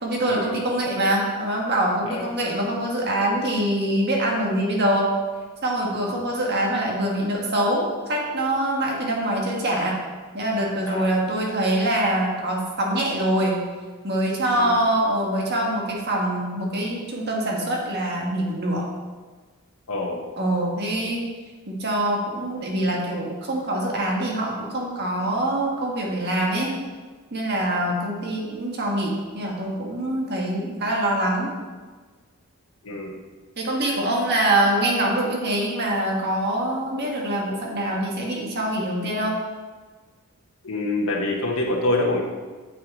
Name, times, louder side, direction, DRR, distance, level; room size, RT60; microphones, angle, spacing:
voice 1, 0.0-5.1 5.6-10.0 10.3-13.6 14.0-18.9 20.4-21.3 21.7-26.7 27.3-31.5 33.6-39.4, right 1 dB, 50° right, -1 dB, 1.6 m, -24 dB
voice 2, 2.1-2.4 6.0-6.2 10.8-11.1 14.6-14.8 19.9-20.2 32.8-33.2 40.6-42.2, left 2 dB, 70° left, -2 dB, 1.2 m, -26 dB
9.1 x 6.6 x 4.2 m, 1.4 s
head